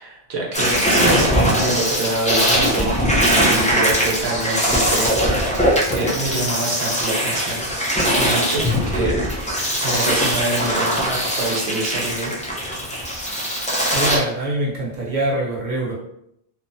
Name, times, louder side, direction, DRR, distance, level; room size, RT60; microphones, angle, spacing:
voice 1, 0.0-7.7 8.1-9.3 9.8-12.3, right 2 dB, 85° right, -2 dB, 0.9 m, -26 dB
sound 1, 0.5-14.2, equal, 10° left, 0.4 m, -20 dB
voice 2, 13.9-15.9, right 1 dB, 50° right, -4 dB, 0.9 m, -23 dB
2.8 x 2.1 x 2.6 m, 0.74 s
omnidirectional pair, 1.0 m